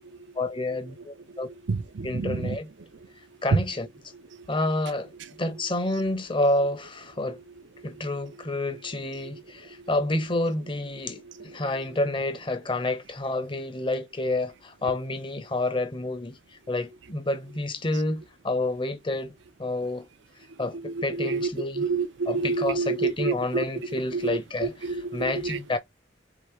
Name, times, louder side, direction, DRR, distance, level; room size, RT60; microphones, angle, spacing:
voice 1, 0.4-1.5 2.0-2.7 3.4-3.9 4.5-5.1 5.4-7.4 7.8-16.4 16.7-19.3 19.6-20.1 20.6-21.9 22.3-25.8, left 2 dB, 25° left, 0.8 m, -29 dB
voice 2, 1.7-2.6 3.5-3.6 20.9-21.5 21.8-23.6 24.1-25.8, right 4 dB, 75° right, 0.6 m, -28 dB
3.8 x 3.8 x 3.1 m
head